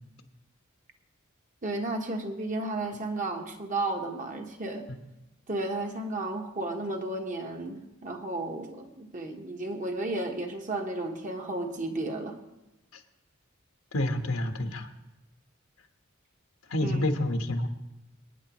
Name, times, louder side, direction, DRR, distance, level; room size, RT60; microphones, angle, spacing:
voice 1, 1.6-4.9 5.5-12.4 16.8-17.0, right 2 dB, 40° right, 3 dB, 1.3 m, -33 dB
voice 2, 13.9-14.9 16.7-17.7, left 1 dB, 80° left, 5 dB, 1.4 m, -28 dB
27.0 x 9.7 x 3.1 m, 0.96 s
head